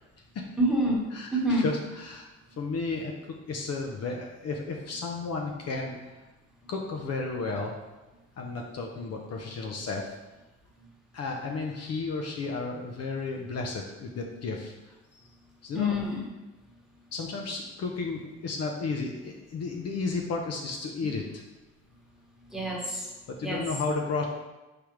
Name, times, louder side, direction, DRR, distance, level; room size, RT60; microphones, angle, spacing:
voice 1, 0.6-1.0 1.3-1.7 15.7-16.2 22.5-23.1 23.4-23.6, equal, ahead, -4 dB, 1.3 m, -26 dB
voice 2, 1.1-2.3 2.6-6.2 6.7-7.7 8.4-10.2 11.1-15.3 15.6-16.0 17.1-21.4 23.3-24.3, left 4 dB, 55° left, 1 dB, 0.7 m, -33 dB
4.9 x 3.6 x 3.0 m, 1.1 s
cardioid pair, 90°, 30 cm